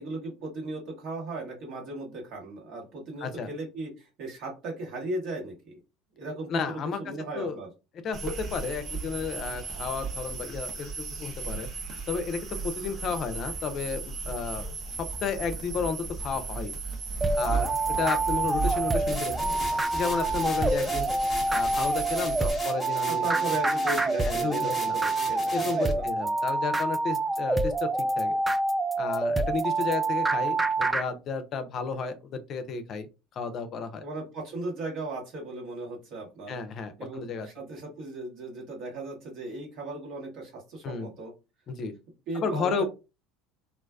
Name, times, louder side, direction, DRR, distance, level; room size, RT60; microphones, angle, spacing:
voice 1, 0.0-5.8 6.2-7.7 23.1-26.1 34.0-36.6 37.0-41.3 42.3-42.8, right 2 dB, 55° right, -1 dB, 1.2 m, -37 dB
voice 2, 6.5-7.6 8.0-11.7 12.1-14.7 15.0-16.7 17.3-19.6 19.9-21.1 21.5-23.3 24.2-25.0 25.5-27.9 28.2-28.4 29.0-33.1 33.4-34.0 36.5-37.5 40.8-41.1 41.7-41.9 42.4-42.8, left 5 dB, 45° left, 9 dB, 0.5 m, -32 dB
sound 1, 8.1-22.5, right 4 dB, 40° right, 0.7 m, -35 dB
sound 2, 17.2-31.1, right 3 dB, 15° right, 0.3 m, -27 dB
sound 3, 19.1-25.9, left 2 dB, 15° left, 0.9 m, -40 dB
2.4 x 2.2 x 2.3 m, 0.28 s
hypercardioid pair, 75°, 0 cm